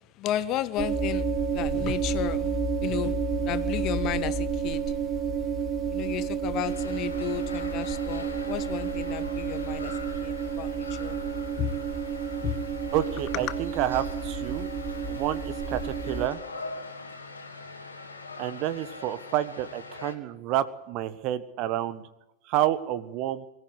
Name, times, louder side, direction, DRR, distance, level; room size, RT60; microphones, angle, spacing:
voice 1, 0.2-4.9 5.9-9.9 10.2-11.2 11.6-11.8 12.4-12.6, left 12 dB, 35° left, 1.2 m, -33 dB
sound 1, 0.8-16.3, right 5 dB, 25° right, 5.1 m, -30 dB
sound 2, 6.6-20.2, left 3 dB, 80° left, 3.1 m, -42 dB
voice 2, 12.9-14.7 15.1-16.4 18.4-22.0 22.5-23.5, right 12 dB, 40° right, 1.4 m, -29 dB
23.5 x 14.5 x 9.8 m
figure-of-eight pair, 90°, 0 cm